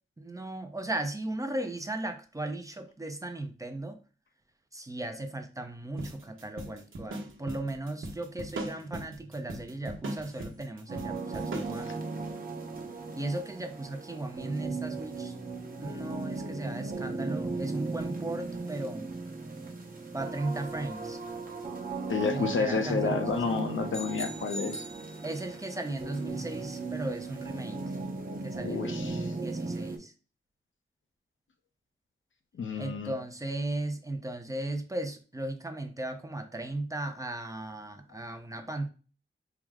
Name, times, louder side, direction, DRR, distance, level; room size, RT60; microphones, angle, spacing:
voice 1, 0.2-4.0 4.7-12.0 13.1-15.3 15.8-19.1 20.1-21.2 22.3-23.5 25.2-27.8 28.4-30.1 32.8-38.9, right 2 dB, 15° right, 0.4 m, -36 dB
sound 1, 6.0-11.8, right 2 dB, 80° right, 0.9 m, -40 dB
sound 2, 10.9-30.0, right 3 dB, 45° right, 0.8 m, -37 dB
voice 2, 22.1-24.8 28.6-29.3 32.6-33.1 38.1-38.2, left 5 dB, 75° left, 0.6 m, -30 dB
sound 3, 23.9-25.7, right 1 dB, 35° left, 0.6 m, -42 dB
4.6 x 2.0 x 3.5 m
wide cardioid pair, 145°, 20 cm